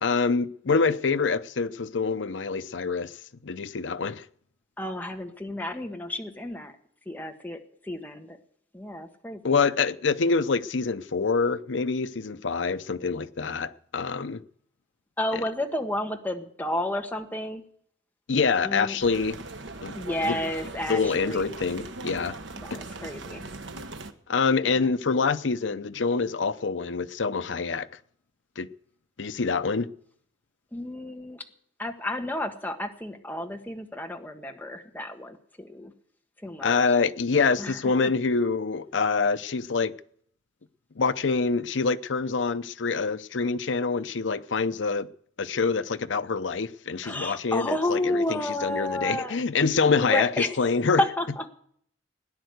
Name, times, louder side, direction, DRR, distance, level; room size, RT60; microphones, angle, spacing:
voice 1, 0.0-3.2 3.4-4.2 9.4-14.4 18.3-19.4 19.8-20.0 20.2-20.4 20.9-22.4 22.7-22.8 24.3-27.9 28.6-28.7 29.2-29.9 36.6-39.9 41.0-45.1 45.4-51.0, left 4 dB, 90° left, 0.7 m, -26 dB
voice 2, 4.8-6.7 7.0-8.4 8.7-9.5 15.2-17.6 18.6-19.0 19.9-21.5 22.6-23.5 30.7-31.4 31.8-35.9 36.4-37.0 37.6-38.1 47.0-49.3 50.0-50.6 51.0-51.5, left 1 dB, 10° left, 1.5 m, -31 dB
sound 1, 19.0-24.1, right 3 dB, 85° right, 1.3 m, -40 dB
17.5 x 10.5 x 8.0 m
head